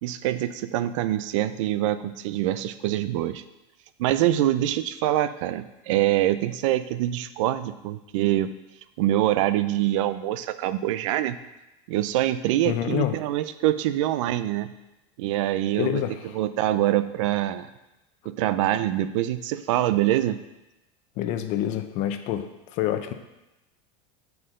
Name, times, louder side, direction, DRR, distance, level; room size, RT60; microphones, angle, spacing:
voice 1, 0.0-3.4 4.0-8.5 9.0-11.4 11.9-14.7 15.2-16.0 16.3-17.7 18.3-20.4, right 13 dB, 80° right, 13 dB, 0.5 m, -25 dB
voice 2, 12.6-13.1 15.8-16.1 21.2-23.1, left 11 dB, 50° left, 8 dB, 0.6 m, -27 dB
8.4 x 4.6 x 3.7 m, 0.96 s
supercardioid pair, 145°, 16 cm